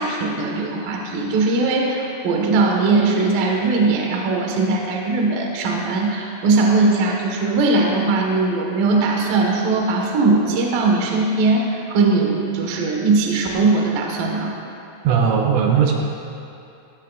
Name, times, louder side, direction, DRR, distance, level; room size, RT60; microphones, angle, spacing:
voice 1, 0.0-14.5, right 3 dB, 70° right, 0 dB, 2.2 m, -20 dB
voice 2, 15.0-15.9, right 7 dB, 85° right, 0 dB, 3.3 m, -17 dB
18.0 x 13.5 x 2.4 m, 2.7 s
omnidirectional pair, 5.9 m